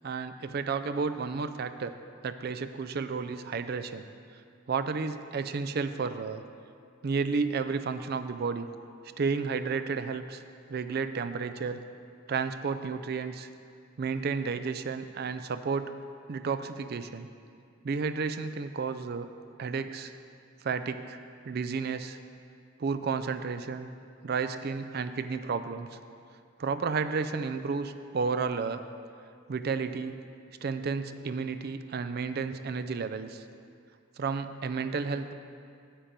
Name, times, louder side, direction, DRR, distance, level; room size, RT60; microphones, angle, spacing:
voice 1, 0.0-1.9 2.2-4.1 4.7-6.4 7.0-8.7 9.2-10.4 10.7-11.8 12.3-13.5 14.0-15.9 16.3-17.3 17.8-19.3 19.6-20.1 20.6-22.2 22.8-23.9 24.2-26.0 26.6-28.8 29.5-30.2 30.6-33.4 34.2-35.3, right 5 dB, 45° right, 10 dB, 0.4 m, -32 dB
8.7 x 7.4 x 5.2 m, 2.3 s
head